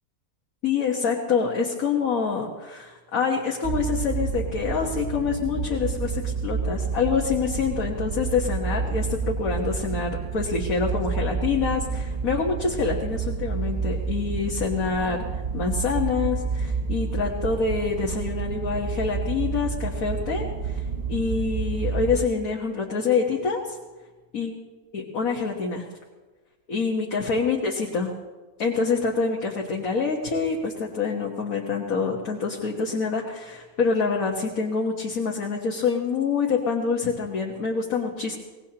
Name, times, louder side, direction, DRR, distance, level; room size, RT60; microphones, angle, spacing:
voice 1, 0.6-20.8 21.1-23.8 24.3-24.6 24.9-25.9 26.7-28.1 28.6-38.4, left 5 dB, 70° left, -1 dB, 1.8 m, -26 dB
sound 1, 3.6-22.3, right 5 dB, 35° right, 0.7 m, -29 dB
24.0 x 19.0 x 2.9 m, 1.3 s
omnidirectional pair, 1.5 m